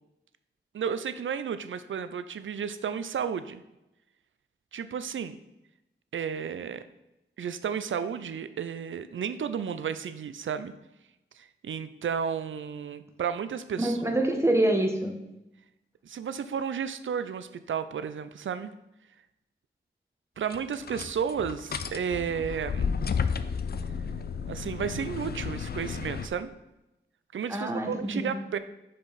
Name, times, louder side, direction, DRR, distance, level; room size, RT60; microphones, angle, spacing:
voice 1, 0.7-3.6 4.7-5.4 6.1-6.8 7.4-10.7 11.4-14.0 16.0-18.7 20.4-22.9 24.5-26.5 27.3-28.6, right 7 dB, 80° right, 12 dB, 0.5 m, -32 dB
voice 2, 13.8-15.1 27.5-28.3, right 1 dB, 15° right, 3 dB, 1.1 m, -26 dB
sound 1, 20.5-26.3, left 6 dB, 55° left, 0.4 m, -32 dB
5.8 x 5.0 x 4.1 m, 0.92 s
wide cardioid pair, 75°, 20 cm